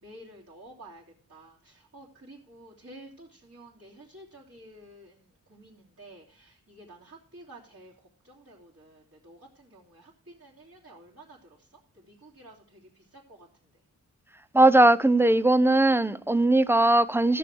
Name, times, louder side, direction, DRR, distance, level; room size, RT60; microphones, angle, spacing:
voice 1, 0.0-1.0 1.3-7.9 8.2-11.4 12.1-13.0 13.3-13.5, right 1 dB, 45° right, 3.2 m, -51 dB
voice 2, 14.5-17.4, right 2 dB, 5° right, 0.6 m, -19 dB
14.0 x 6.9 x 6.1 m
wide cardioid pair, 95°, 32 cm